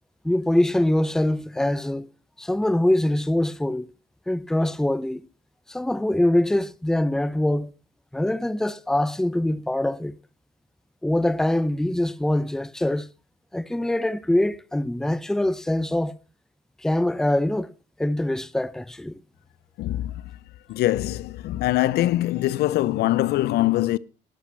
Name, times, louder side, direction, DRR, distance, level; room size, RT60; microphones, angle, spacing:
voice 1, 0.2-2.1 2.4-3.9 4.3-5.2 5.7-7.7 8.1-10.2 11.0-13.1 13.5-16.1 16.8-17.7 18.0-19.2, left 1 dB, 5° left, 0.6 m, -23 dB
voice 2, 19.8-20.3 20.7-24.0, left 15 dB, 70° left, 0.6 m, -23 dB
12.5 x 11.5 x 5.5 m
cardioid pair, 110°, 17 cm